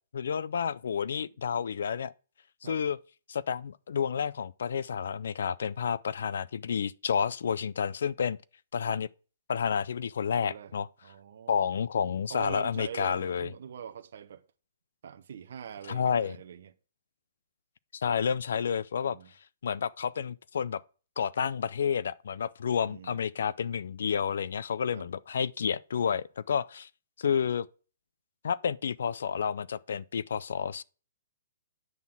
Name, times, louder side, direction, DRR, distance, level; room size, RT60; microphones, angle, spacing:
voice 1, 0.1-2.1 2.6-3.0 3.3-8.4 8.7-9.1 9.5-10.9 11.5-13.5 15.9-16.4 17.9-19.2 19.6-20.8 21.2-26.9 27.2-27.7 28.4-30.8, left 7 dB, 60° left, 0.4 m, -30 dB
voice 2, 10.4-10.7 11.0-11.7 12.3-14.4 15.0-16.7 19.0-19.3 22.8-23.2 24.9-25.1, right 8 dB, 50° right, 0.8 m, -44 dB
9.3 x 4.1 x 7.1 m
hypercardioid pair, 180°, 0 cm